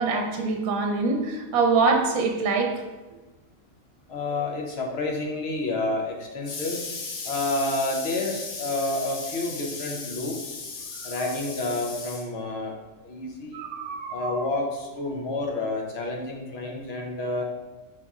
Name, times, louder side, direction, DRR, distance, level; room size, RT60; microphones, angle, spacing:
voice 1, 0.0-2.7 13.5-14.3, right 4 dB, 80° right, 2 dB, 1.1 m, -24 dB
voice 2, 4.1-12.7 13.0-13.6 14.1-17.4, left 2 dB, 60° left, 1 dB, 0.8 m, -29 dB
4.6 x 4.0 x 2.4 m, 1.2 s
omnidirectional pair, 1.5 m